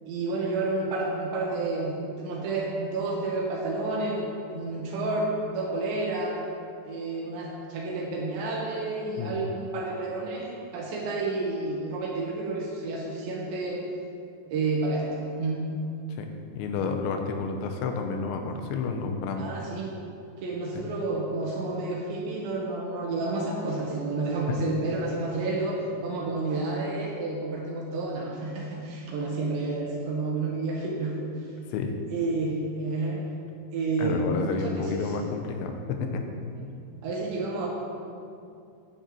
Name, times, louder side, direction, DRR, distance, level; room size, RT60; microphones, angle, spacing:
voice 1, 0.1-6.4 6.8-13.8 14.5-15.7 19.4-19.9 20.4-31.5 32.1-33.2 33.7-35.2 36.6-36.7 37.0-37.7, right 2 dB, 80° right, -3 dB, 3.7 m, -30 dB
voice 2, 16.2-19.5 20.7-20.9 24.5-24.6 31.7-32.0 34.0-36.3, left 4 dB, 85° left, 5 dB, 3.2 m, -30 dB
10.5 x 7.2 x 7.7 m, 2.5 s
omnidirectional pair, 5.1 m